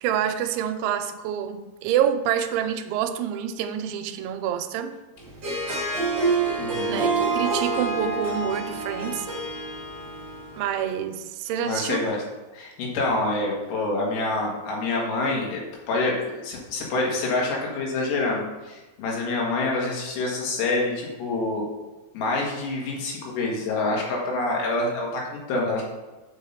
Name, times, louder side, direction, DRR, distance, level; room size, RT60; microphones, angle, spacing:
voice 1, 0.0-5.0 6.9-9.3 10.5-12.1, right 9 dB, 85° right, 7 dB, 3.0 m, -27 dB
Harp, 5.3-10.7, right 3 dB, 35° right, 1.8 m, -27 dB
voice 2, 6.6-7.0 11.6-12.2 12.5-15.6 15.9-21.7 22.1-25.8, left 2 dB, 70° left, -2 dB, 3.8 m, -26 dB
6.6 x 6.6 x 5.6 m, 1.2 s
omnidirectional pair, 5.4 m